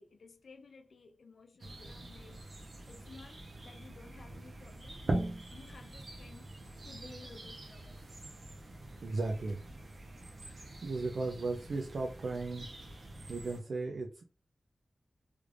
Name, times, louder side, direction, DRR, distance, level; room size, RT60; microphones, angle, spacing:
voice 1, 0.0-2.5 2.9-6.5 6.8-8.1, left 4 dB, 80° left, 0.6 m, -55 dB
sound 1, 1.6-13.6, right 2 dB, 55° right, 0.9 m, -43 dB
voice 2, 9.0-9.6 10.4-12.7 13.3-14.3, right 3 dB, 75° right, 0.4 m, -36 dB
3.3 x 3.2 x 2.5 m
wide cardioid pair, 120°, 0 cm